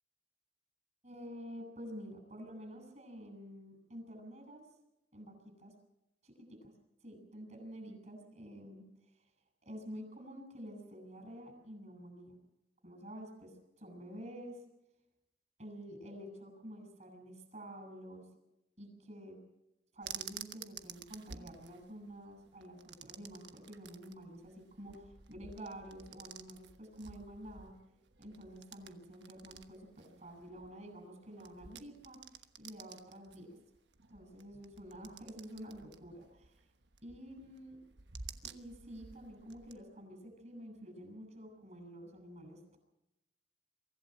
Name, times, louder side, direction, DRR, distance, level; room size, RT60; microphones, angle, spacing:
voice 1, 1.0-4.7 5.1-5.7 6.2-6.7 7.0-8.8 9.6-12.4 12.8-14.6 15.6-18.3 18.8-19.4 19.9-27.8 28.2-32.2 32.6-33.5 34.1-36.6 37.0-37.8 38.4-42.8, equal, 40° right, 5 dB, 6.7 m, -49 dB
sound 1, 20.0-39.8, right 7 dB, 85° right, 1.2 m, -52 dB
24.0 x 15.0 x 7.7 m, 0.88 s
head